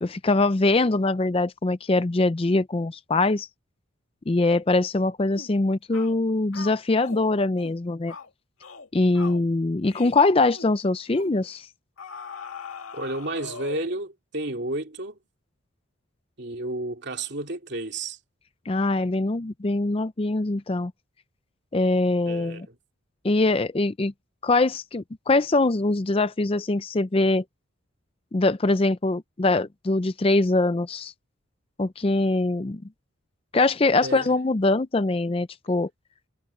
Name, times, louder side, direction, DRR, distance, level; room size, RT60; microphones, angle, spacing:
voice 1, 0.0-3.5 4.3-8.1 8.9-11.7 18.7-20.9 21.7-22.7 23.2-24.1 24.4-27.4 28.3-31.1 31.8-32.8 33.5-35.9, left 2 dB, 25° left, 0.4 m, -23 dB
sound 1, 5.3-5.5 5.9-6.2 6.5-7.2 7.6-7.8 8.1-8.3 8.6-8.9 9.1-9.4 9.9-10.2 10.5-10.7 11.1-11.4 12.0-14.0, left 4 dB, 80° left, 2.2 m, -40 dB
voice 2, 12.9-15.2 16.4-18.2 22.3-22.7 34.0-34.3, right 2 dB, 55° right, 3.0 m, -32 dB
head